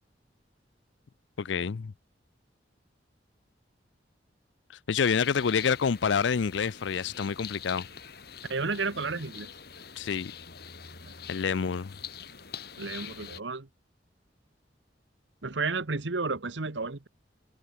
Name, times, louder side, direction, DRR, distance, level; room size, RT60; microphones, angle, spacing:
voice 1, 1.4-1.9 4.9-7.9 10.0-10.3 11.3-11.9, left 6 dB, 80° left, 0.5 m, -27 dB
sound 1, 5.0-13.4, left 8 dB, 60° left, 4.9 m, -45 dB
voice 2, 8.5-9.5 12.8-13.7 15.4-17.1, right 4 dB, 80° right, 1.3 m, -32 dB
head